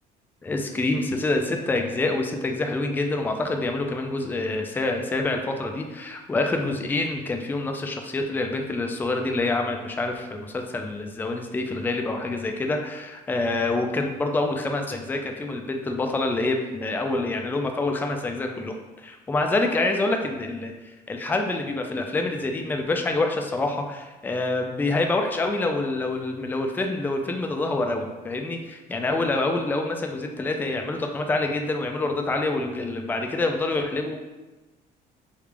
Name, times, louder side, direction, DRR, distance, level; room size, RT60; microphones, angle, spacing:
voice 1, 0.4-20.7 21.1-34.2, left 2 dB, 10° left, 3 dB, 0.3 m, -26 dB
3.3 x 2.4 x 3.3 m, 1.1 s
cardioid pair, 100°, 17 cm